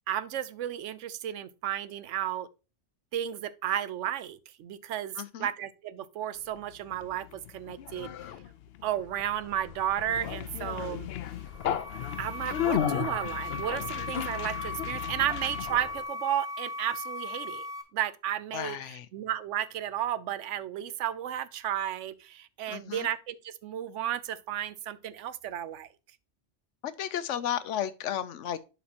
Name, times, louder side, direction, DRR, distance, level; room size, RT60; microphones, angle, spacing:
voice 1, 0.1-2.5 3.1-8.1 8.8-11.1 12.2-17.6 17.9-18.8 19.1-25.9, right 11 dB, 90° right, 1.0 m, -33 dB
voice 2, 5.2-5.5 18.5-19.1 22.7-23.1 26.8-28.6, left 10 dB, 90° left, 1.0 m, -33 dB
Conversation, 6.6-16.0, left 10 dB, 65° left, 0.7 m, -35 dB
sound 1, 11.3-17.8, left 2 dB, 5° right, 0.9 m, -38 dB
11.0 x 4.2 x 2.9 m
omnidirectional pair, 1.2 m